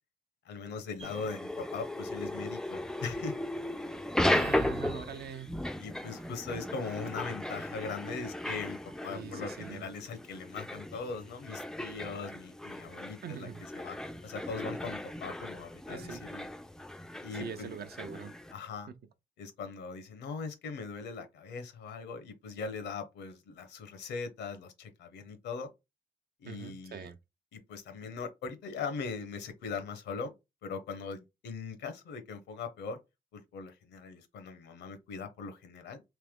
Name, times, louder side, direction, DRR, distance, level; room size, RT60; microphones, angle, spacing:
voice 1, 0.4-3.4 5.8-13.5 13.7-14.0 14.2-16.5 17.2-17.7 18.5-18.9 19.4-25.7 26.4-27.1 27.5-30.3 30.6-33.0 33.3-36.0, left 5 dB, 90° left, 0.9 m, -40 dB
sound 1, 1.0-18.5, left 1 dB, 5° left, 0.3 m, -36 dB
voice 2, 4.3-5.6 9.1-9.9 13.2-13.6 15.9-16.2 17.4-18.3 18.9-19.0 26.4-27.2, right 7 dB, 65° right, 0.6 m, -42 dB
3.3 x 3.0 x 3.6 m
cardioid pair, 70°, 18 cm